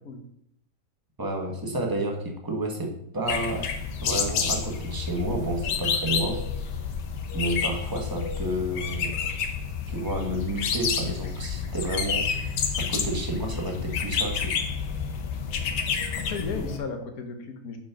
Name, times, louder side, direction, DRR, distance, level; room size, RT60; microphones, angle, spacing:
voice 1, 1.2-3.7 4.0-6.8 7.3-9.1 9.9-12.3 12.8-14.6, right 1 dB, 15° right, 1 dB, 1.1 m, -30 dB
sound 1, 3.3-16.8, left 6 dB, 85° left, 1.5 m, -29 dB
voice 2, 16.1-17.8, left 4 dB, 60° left, 5 dB, 1.5 m, -35 dB
6.3 x 5.0 x 5.7 m, 0.73 s
omnidirectional pair, 1.8 m